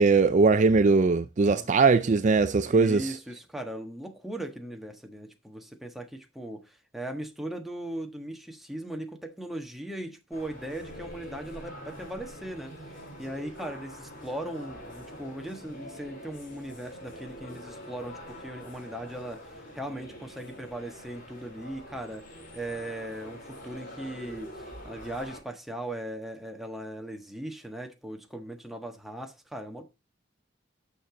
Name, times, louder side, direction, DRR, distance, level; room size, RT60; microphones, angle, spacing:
voice 1, 0.0-3.1, right 4 dB, 40° right, 0.4 m, -21 dB
voice 2, 2.6-22.3 22.5-29.8, right 1 dB, ahead, 1.4 m, -38 dB
sound 1, 10.3-25.4, equal, 45° left, 4.4 m, -45 dB
8.9 x 6.7 x 3.9 m
head